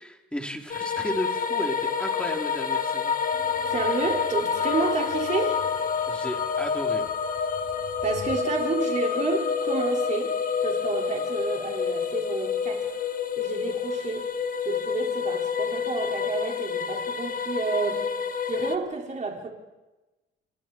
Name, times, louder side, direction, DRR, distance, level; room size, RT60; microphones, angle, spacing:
voice 1, 0.0-3.1 6.1-7.0, equal, 5° left, 3.9 m, -34 dB
sound 1, 0.7-18.8, left 6 dB, 45° left, 1.8 m, -28 dB
sound 2, 3.3-8.3, left 1 dB, 20° left, 5.2 m, -48 dB
voice 2, 3.7-5.7 8.0-10.4 10.6-12.9 13.4-14.3 14.6-18.1 18.4-19.5, right 4 dB, 40° right, 5.7 m, -30 dB
30.0 x 27.5 x 4.7 m
cardioid pair, 90°, 20 cm